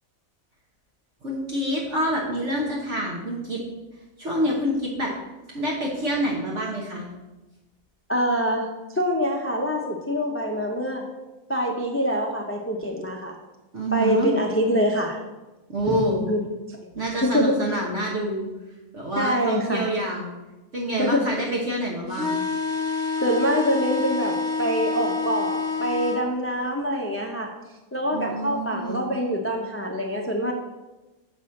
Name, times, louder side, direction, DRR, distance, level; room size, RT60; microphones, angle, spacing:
voice 1, 1.2-3.6 4.2-5.1 5.5-7.1 13.7-14.3 15.7-16.2 16.9-18.4 18.9-20.3 20.7-22.3 28.1-29.0, right 1 dB, 55° right, -3 dB, 1.4 m, -27 dB
voice 2, 8.1-11.1 11.5-13.4 13.9-15.2 15.9-16.4 16.7-16.8 17.2-17.6 19.2-19.8 21.0-21.2 23.2-27.5 27.9-30.5, equal, 20° left, 1 dB, 0.4 m, -25 dB
sound 1, 22.1-26.2, left 4 dB, 40° left, 1.0 m, -27 dB
6.7 x 4.3 x 6.3 m, 1.1 s
omnidirectional pair, 1.5 m